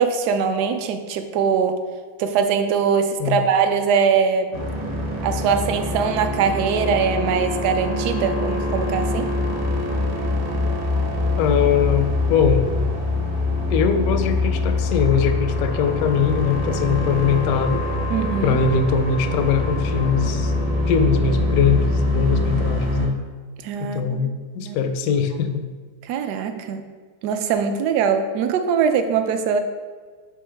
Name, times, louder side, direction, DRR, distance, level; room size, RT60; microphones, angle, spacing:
voice 1, 0.0-1.8 2.2-4.5 5.2-9.3 18.1-18.6 23.6-24.3 24.6-24.8 26.1-26.9 27.2-29.6, right 6 dB, 70° right, 8 dB, 1.0 m, -22 dB
sound 1, 4.5-23.1, left 2 dB, 45° right, 0.7 m, -24 dB
voice 2, 11.4-12.9 13.7-17.8 18.4-20.5 20.9-23.2 23.8-25.7, left 6 dB, 75° left, 8 dB, 0.8 m, -21 dB
8.4 x 3.5 x 3.4 m, 1.5 s
omnidirectional pair, 2.0 m